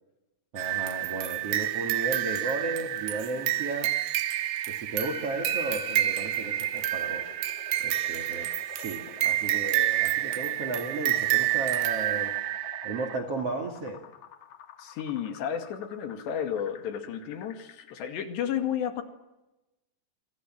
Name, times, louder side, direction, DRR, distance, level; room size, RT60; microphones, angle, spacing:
voice 1, 0.5-3.9 4.7-7.3 7.8-12.3 12.8-14.0, right 2 dB, 40° right, 7 dB, 2.8 m, -34 dB
sound 1, 0.6-13.2, right 14 dB, 75° right, 3.1 m, -29 dB
sound 2, 6.3-18.3, left 7 dB, 55° left, 2.5 m, -50 dB
voice 2, 14.8-19.0, left 9 dB, 75° left, 6 dB, 4.4 m, -32 dB
28.5 x 25.5 x 7.6 m, 0.97 s
omnidirectional pair, 5.0 m